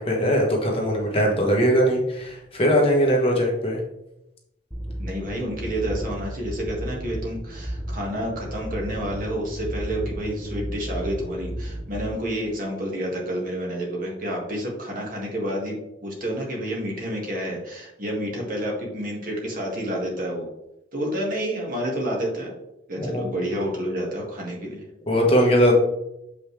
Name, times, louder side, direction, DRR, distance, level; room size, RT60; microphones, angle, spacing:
voice 1, 0.0-3.8 23.0-23.2 25.1-25.7, equal, 30° left, -1 dB, 1.3 m, -20 dB
sound 1, 4.7-12.1, equal, ahead, 0.7 m, -33 dB
voice 2, 5.0-15.7 16.0-20.5 20.9-22.5 22.9-24.8, equal, 45° right, -1 dB, 1.9 m, -29 dB
7.1 x 5.4 x 3.3 m, 0.87 s
head